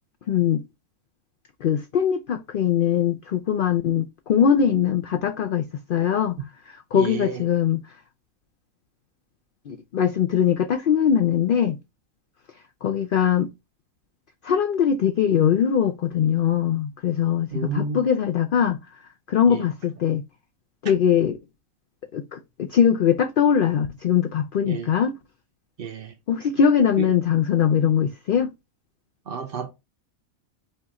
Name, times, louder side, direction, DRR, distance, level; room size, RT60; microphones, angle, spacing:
voice 1, 0.3-0.6 1.6-6.4 6.9-7.8 9.7-11.8 12.8-13.5 14.4-18.8 19.3-20.2 20.8-21.4 22.1-25.2 26.3-28.5, left 8 dB, 65° left, 0.5 m, -21 dB
voice 2, 6.9-7.5 17.5-18.0 19.5-19.6 20.8-20.9 24.7-24.9 25.8-26.1 27.0-27.1 29.3-29.7, right 6 dB, 55° right, 0.6 m, -31 dB
5.5 x 2.4 x 4.1 m
omnidirectional pair, 1.4 m